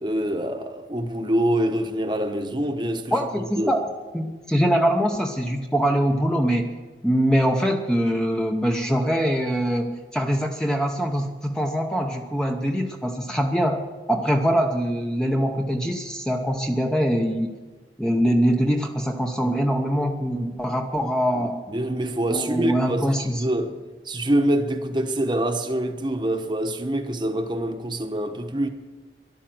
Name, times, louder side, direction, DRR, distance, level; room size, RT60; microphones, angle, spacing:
voice 1, 0.0-3.8 21.3-23.8 24.0-28.7, right 1 dB, 25° right, 1.1 m, -25 dB
voice 2, 3.1-3.8 4.1-6.7 7.0-13.8 14.1-17.5 18.0-21.6 22.3-23.4, equal, 5° left, 0.8 m, -23 dB
13.0 x 11.5 x 7.8 m
head